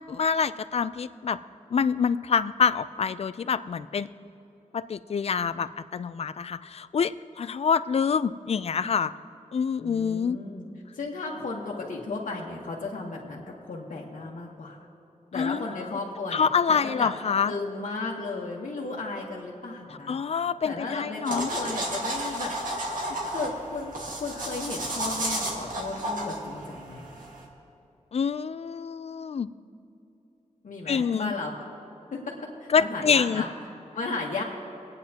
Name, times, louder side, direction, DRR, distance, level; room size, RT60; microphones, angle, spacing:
voice 1, 0.1-1.4 1.7-4.1 4.7-9.1 9.5-10.4 15.3-15.7 16.3-17.5 20.1-21.5 28.1-29.5 30.9-31.3 32.7-33.4, left 6 dB, 50° left, 14 dB, 0.4 m, -26 dB
voice 2, 9.8-10.6 10.9-14.8 15.3-17.1 17.4-20.2 20.6-22.8 23.3-23.9 24.2-27.0 30.6-31.5 32.1-33.5 33.9-34.4, left 3 dB, 75° left, -4 dB, 1.3 m, -34 dB
sound 1, 21.2-27.4, right 1 dB, 90° right, 1.9 m, -32 dB
26.0 x 9.1 x 2.9 m, 2.8 s
wide cardioid pair, 100°, 13 cm